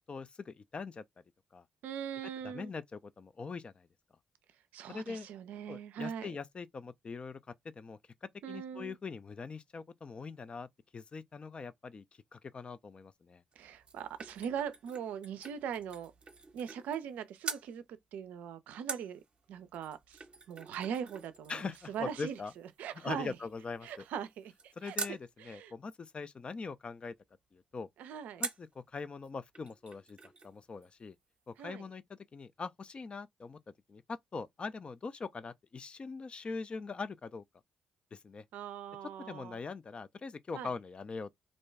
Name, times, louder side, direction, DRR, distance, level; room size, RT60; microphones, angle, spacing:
voice 1, 0.1-1.0 1.5-1.6 2.4-3.9 4.9-5.3 5.7-10.7 10.9-12.0 12.3-13.4 21.5-22.5 22.9-24.0 24.8-27.1 27.5-27.9 28.4-30.2 30.4-31.2 31.5-33.6 33.9-37.4 38.1-38.4 39.3-41.3, left 4 dB, 40° left, 0.4 m, -42 dB
voice 2, 1.8-2.7 4.7-6.3 8.4-9.0 13.6-16.1 16.5-19.2 19.5-22.4 22.8-23.4 23.8-25.0 25.4-25.7 28.0-28.4 31.6-31.8 38.5-39.6 40.5-40.7, right 8 dB, 75° right, 0.4 m, -41 dB
sound 1, 13.5-17.1 17.4-17.7 18.9-25.2 28.4-28.8 29.2-29.3 29.5-30.5 30.8-30.9, right 4 dB, 40° right, 0.7 m, -45 dB
2.6 x 2.2 x 3.2 m
hypercardioid pair, 45°, 3 cm